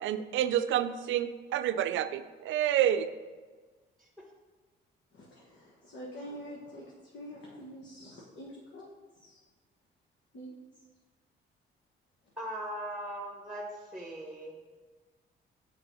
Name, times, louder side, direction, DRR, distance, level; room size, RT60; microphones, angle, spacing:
voice 1, 0.0-3.1, right 11 dB, 75° right, 12 dB, 0.5 m, -29 dB
voice 2, 5.1-9.4 10.3-10.5 12.2-12.3, equal, 70° left, -4 dB, 1.4 m, -46 dB
voice 3, 12.4-13.6 13.9-14.5, right 1 dB, ahead, -1 dB, 1.4 m, -39 dB
6.8 x 4.7 x 5.6 m, 1.4 s
cardioid pair, 90°, 20 cm